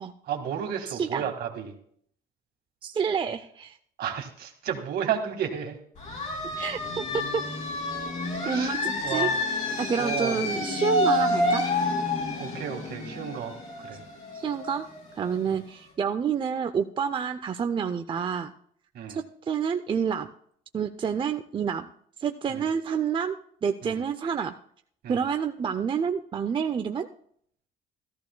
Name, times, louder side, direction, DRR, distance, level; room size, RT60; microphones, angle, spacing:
voice 1, 0.2-1.8 4.0-5.8 8.4-9.4 10.0-10.5 12.4-14.0 18.9-19.2 22.5-22.7 23.8-24.0 25.0-25.2, right 8 dB, 70° right, 4 dB, 1.9 m, -33 dB
voice 2, 0.9-1.3 2.8-3.8 6.6-6.8 7.1-7.4 8.5-9.3 9.8-11.6 14.3-14.9 15.1-18.5 19.1-20.3 20.7-21.9 22.2-23.4 23.6-24.5 25.1-27.1, right 7 dB, 30° right, 7 dB, 0.5 m, -28 dB
sound 1, 6.0-15.5, left 2 dB, 45° left, 3.3 m, -29 dB
14.0 x 13.5 x 2.2 m, 0.62 s
cardioid pair, 110°, 17 cm